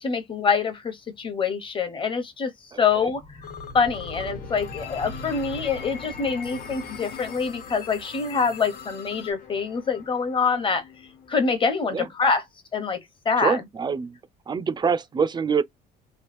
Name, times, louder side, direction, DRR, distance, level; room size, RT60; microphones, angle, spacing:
voice 1, 0.0-2.5 2.8-3.2 3.7-10.8 11.3-12.4 12.7-13.0 13.2-13.6, left 5 dB, 30° left, 0.9 m, -25 dB
voice 2, 2.7-3.1 11.9-12.1 13.4-14.2 14.5-15.6, right 6 dB, 25° right, 0.4 m, -25 dB
sound 1, 2.8-11.9, left 3 dB, 50° left, 1.2 m, -41 dB
sound 2, 3.4-4.3 4.6-9.3, left 7 dB, 70° left, 0.7 m, -42 dB
3.1 x 2.3 x 3.3 m
cardioid pair, 110°, 17 cm